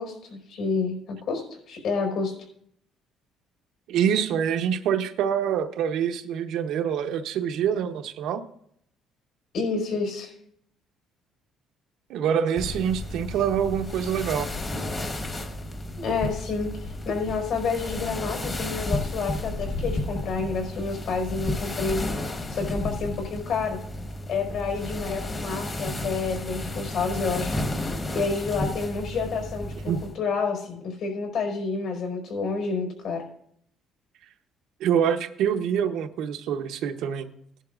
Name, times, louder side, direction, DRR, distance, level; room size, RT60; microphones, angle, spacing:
voice 1, 0.0-2.3 9.5-10.3 16.0-22.0 22.5-23.8 24.3-27.6 28.1-33.2, left 4 dB, 65° left, 2 dB, 4.7 m, -29 dB
voice 2, 3.9-8.4 12.1-14.5 29.9-30.0 34.8-37.3, right 8 dB, 75° right, 7 dB, 0.8 m, -25 dB
sound 1, 12.6-30.1, left 1 dB, 25° left, 1.2 m, -32 dB
17.0 x 11.0 x 2.5 m, 0.68 s
cardioid pair, 145°, 0 cm